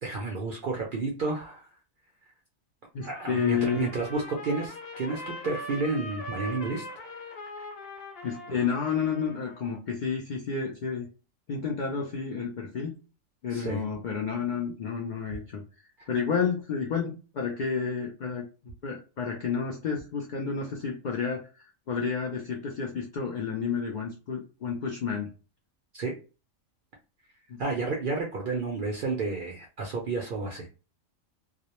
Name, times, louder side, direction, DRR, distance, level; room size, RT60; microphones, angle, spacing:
voice 1, 0.0-1.7 3.0-6.8 13.5-13.8 16.0-16.1 25.9-26.1 27.6-30.7, right 3 dB, 65° right, 0 dB, 0.5 m, -31 dB
voice 2, 2.9-3.9 8.2-11.1 11.5-12.9 13.4-15.6 16.1-25.3 27.5-27.6, left 6 dB, 90° left, 1 dB, 0.4 m, -30 dB
Trumpet, 3.0-9.8, left 1 dB, 60° left, 0.7 m, -41 dB
2.3 x 2.0 x 2.9 m, 0.33 s
omnidirectional pair, 1.4 m